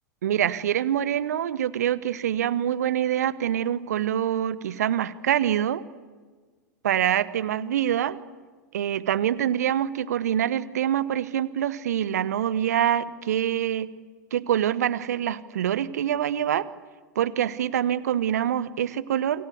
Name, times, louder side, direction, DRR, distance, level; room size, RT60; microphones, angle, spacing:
voice 1, 0.2-5.8 6.8-8.2 8.7-13.9 14.3-16.7 17.1-19.5, right 10 dB, 60° right, 18 dB, 1.2 m, -25 dB
28.5 x 26.0 x 8.2 m, 1.5 s
figure-of-eight pair, 90°, 10 cm